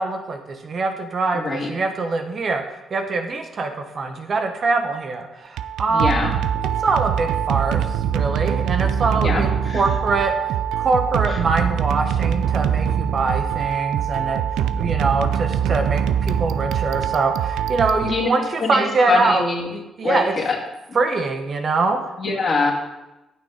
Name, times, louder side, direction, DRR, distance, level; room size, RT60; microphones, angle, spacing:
voice 1, 0.0-2.6 2.9-6.3 6.8-7.9 8.1-10.3 10.8-19.4 19.7-20.3 20.9-22.1, right 3 dB, 50° right, 6 dB, 1.1 m, -23 dB
voice 2, 1.3-1.7 5.9-6.3 9.2-9.8 11.3-11.4 18.0-18.3 18.6-19.7 20.0-20.6 22.2-22.7, left 3 dB, 45° left, -1 dB, 2.3 m, -23 dB
sound 1, 5.4-18.6, right 8 dB, 75° right, 0.4 m, -23 dB
8.9 x 6.3 x 5.0 m, 1.0 s
hypercardioid pair, 45°, 0 cm